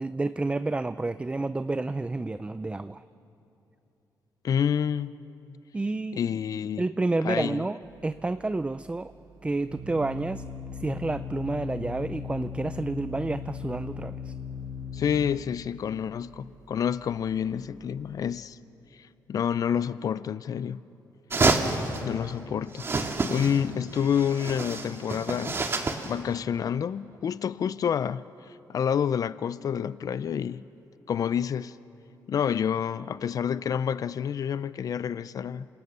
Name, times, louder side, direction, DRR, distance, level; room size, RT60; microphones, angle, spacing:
voice 1, 0.0-3.0 5.7-6.2 6.8-9.1 9.4-10.4 10.8-14.3, right 2 dB, 15° right, 0.5 m, -30 dB
voice 2, 4.4-5.1 6.1-6.9 7.2-7.6 14.9-18.6 19.0-20.8 22.0-22.9 23.3-25.6 26.0-30.6 31.1-31.8 32.3-35.7, left 8 dB, 55° left, 0.5 m, -28 dB
Organ, 7.8-18.3, left 5 dB, 75° right, 4.2 m, -39 dB
sound 1, 21.3-22.0 22.8-23.7 23.9-26.1, right 3 dB, 35° right, 2.0 m, -28 dB
27.5 x 27.0 x 6.8 m
cardioid pair, 105°, 7 cm